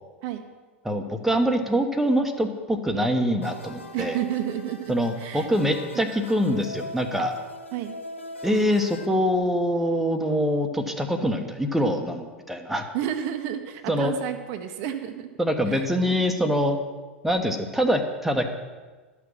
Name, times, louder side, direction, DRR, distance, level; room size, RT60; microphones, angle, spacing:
voice 1, 0.8-4.2 4.9-7.3 8.4-12.9 13.9-14.1 15.4-16.8 17.2-18.5, equal, 5° right, 4 dB, 1.1 m, -24 dB
sound 1, 3.4-9.1, left 1 dB, 80° left, 0.9 m, -41 dB
voice 2, 3.9-5.5 5.9-6.0 7.7-7.9 12.9-15.3 15.7-16.1, right 10 dB, 45° right, 6 dB, 1.0 m, -31 dB
12.0 x 6.1 x 7.3 m, 1.3 s
figure-of-eight pair, 85°, 7 cm